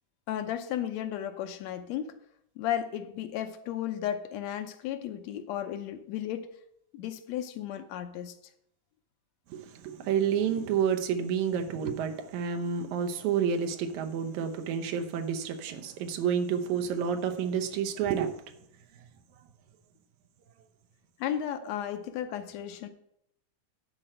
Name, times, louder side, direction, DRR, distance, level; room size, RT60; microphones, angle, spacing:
voice 1, 0.3-2.2 2.6-6.5 6.9-8.4 21.2-22.9, left 10 dB, 75° left, 1.9 m, -34 dB
voice 2, 9.5-18.4, right 7 dB, 85° right, 2.3 m, -29 dB
11.0 x 4.4 x 7.7 m
omnidirectional pair, 3.3 m